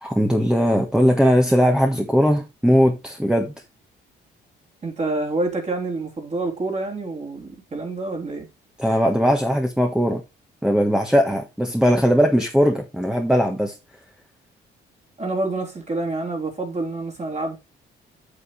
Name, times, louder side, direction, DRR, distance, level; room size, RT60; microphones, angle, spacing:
voice 1, 0.0-3.5 8.8-10.2 10.6-13.8, equal, 5° right, 1.4 m, -19 dB
voice 2, 4.8-8.5 15.2-17.6, right 2 dB, 35° right, 3.5 m, -27 dB
8.5 x 7.9 x 3.3 m
cardioid pair, 90°, 20 cm